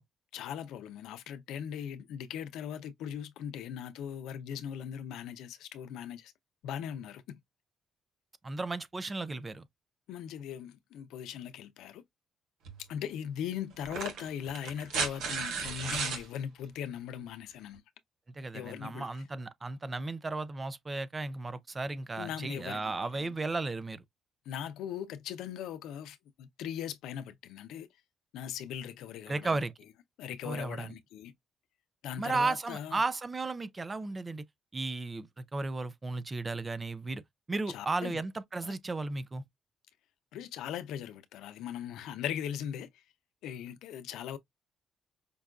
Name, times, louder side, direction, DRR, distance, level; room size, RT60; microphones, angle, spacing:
voice 1, 0.3-6.3 6.6-7.4 10.1-12.0 12.9-17.8 18.5-19.1 22.2-23.3 24.5-27.9 28.3-29.6 30.2-31.3 32.0-33.0 37.7-38.2 38.6-38.7 40.3-43.0 43.4-44.4, left 9 dB, 90° left, 0.5 m, -39 dB
voice 2, 8.4-9.6 18.3-24.0 29.3-29.7 30.4-30.9 32.2-34.4 34.7-37.2 37.5-39.4, right 3 dB, 25° right, 0.5 m, -34 dB
sound 1, 12.7-12.8 13.8-16.2 17.8-17.9, right 5 dB, 80° right, 1.0 m, -34 dB
5.2 x 2.2 x 2.3 m
cardioid pair, 90°, 0 cm